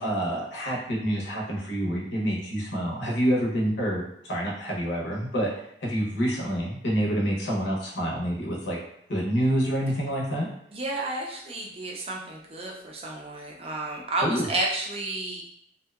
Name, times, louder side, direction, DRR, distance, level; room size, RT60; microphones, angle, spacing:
voice 1, 0.0-5.5 5.8-8.8 9.1-10.5 14.2-14.5, equal, 80° left, -3 dB, 0.7 m, -27 dB
voice 2, 10.7-15.4, right 2 dB, 30° right, -1 dB, 0.4 m, -31 dB
2.7 x 2.1 x 2.3 m, 0.70 s
head